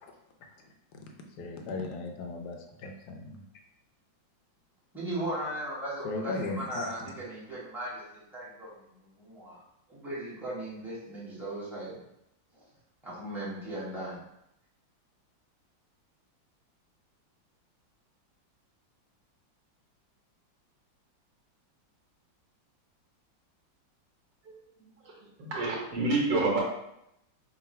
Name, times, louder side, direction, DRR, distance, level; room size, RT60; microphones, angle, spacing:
voice 1, 1.4-3.4 6.0-7.1, left 3 dB, 75° left, 3 dB, 1.0 m, -37 dB
voice 2, 4.9-8.0 8.3-8.7 9.2-9.6 9.9-12.0 13.0-14.2, right 1 dB, ahead, -9 dB, 0.8 m, -37 dB
voice 3, 25.4-26.6, right 2 dB, 65° right, -2 dB, 1.6 m, -27 dB
3.7 x 2.3 x 4.2 m, 0.81 s
omnidirectional pair, 2.1 m